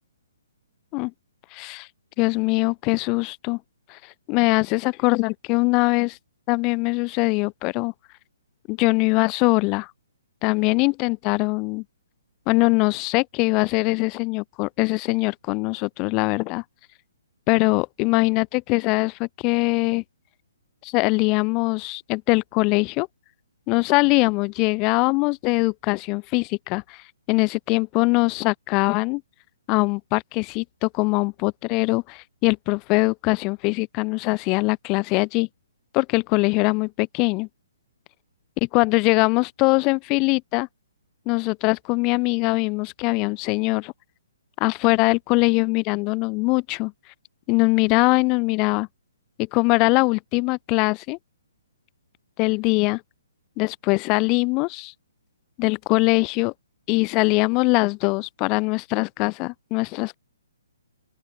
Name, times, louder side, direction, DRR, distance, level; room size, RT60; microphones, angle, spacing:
voice 1, 1.5-1.9 2.2-3.6 3.9-4.0 4.3-6.2 6.5-7.9 8.7-9.9 10.4-11.8 12.5-16.6 17.5-20.0 20.8-23.1 23.7-27.0 27.3-29.2 29.7-35.5 35.9-37.5 38.6-40.7 41.3-43.9 44.6-46.9 47.5-48.9 49.5-51.2 52.4-53.0 53.6-54.9 55.6-56.5 56.9-60.2, left 28 dB, 30° left, 4.4 m, -22 dB
open air
figure-of-eight pair, 130°, 0 cm